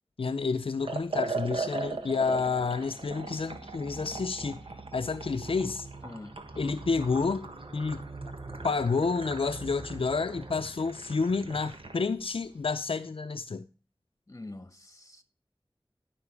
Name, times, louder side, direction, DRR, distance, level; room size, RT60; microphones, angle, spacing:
voice 1, 0.2-4.6 4.9-5.9 6.6-8.1 8.6-13.7, left 4 dB, 90° left, 0.5 m, -30 dB
Liquid, 0.8-12.0, right 3 dB, 80° right, 1.5 m, -39 dB
sound 1, 3.4-10.6, right 3 dB, 40° right, 1.0 m, -45 dB
voice 2, 6.0-6.4 14.3-15.2, left 2 dB, 35° left, 1.5 m, -45 dB
11.5 x 6.0 x 4.7 m
wide cardioid pair, 45°, 9 cm